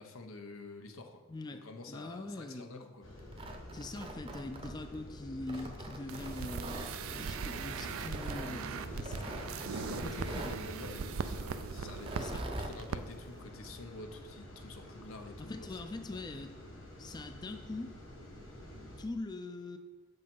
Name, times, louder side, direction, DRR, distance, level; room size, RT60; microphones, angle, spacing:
voice 1, 0.0-1.2 1.5-3.1 5.5-5.6 9.2-12.3 12.6-16.0, left 3 dB, 90° left, 5 dB, 0.8 m, -48 dB
voice 2, 1.3-2.9 3.7-9.7 10.0-10.5 12.2-12.4 15.4-16.5 17.0-17.9 19.0-19.8, left 2 dB, 20° left, 8 dB, 0.4 m, -43 dB
sound 1, 3.0-19.1, equal, 75° left, 1.4 m, -48 dB
Tearing, 3.2-5.0 5.5-6.9 8.0-8.5 9.0-10.6 11.9-12.8, right 1 dB, 25° right, 0.7 m, -43 dB
sound 2, 6.1-12.4 12.7-13.0 13.3-13.4, right 6 dB, 85° right, 0.4 m, -40 dB
7.0 x 5.3 x 5.4 m, 1.3 s
head